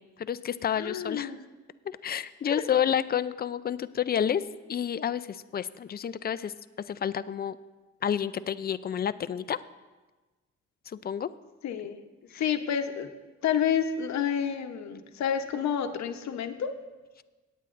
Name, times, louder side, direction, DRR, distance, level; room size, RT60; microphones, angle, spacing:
voice 1, 0.2-1.3 1.9-4.4 4.7-6.5 6.9-7.6 8.0-9.6 10.9-11.3, left 9 dB, 30° left, 15 dB, 0.4 m, -29 dB
voice 2, 0.7-1.5 2.5-2.6 11.6-12.0 12.3-13.1 13.4-16.7, left 8 dB, 65° left, 7 dB, 0.9 m, -29 dB
17.5 x 9.2 x 2.5 m, 1.2 s
cardioid pair, 90°, 30 cm